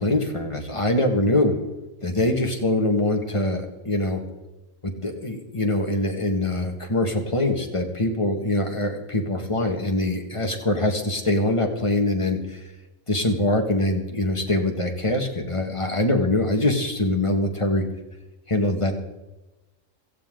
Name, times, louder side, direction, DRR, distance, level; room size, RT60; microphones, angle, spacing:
voice 1, 0.0-1.7 2.0-4.2 4.8-12.6 13.1-17.9 18.5-19.0, left 1 dB, 25° left, 3 dB, 1.8 m, -23 dB
17.0 x 14.5 x 3.9 m, 1.0 s
omnidirectional pair, 1.3 m